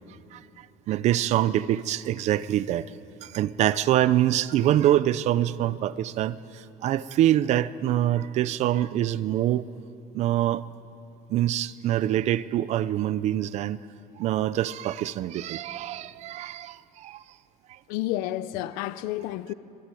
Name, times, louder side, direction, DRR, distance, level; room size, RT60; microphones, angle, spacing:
voice 1, 0.9-2.9 3.2-9.6 10.1-10.7 11.3-13.8 14.2-17.2, right 12 dB, 50° right, 0.7 m, -25 dB
voice 2, 17.9-19.5, left 14 dB, 85° left, 0.9 m, -30 dB
25.5 x 21.0 x 9.3 m
cardioid pair, 155°, 15 cm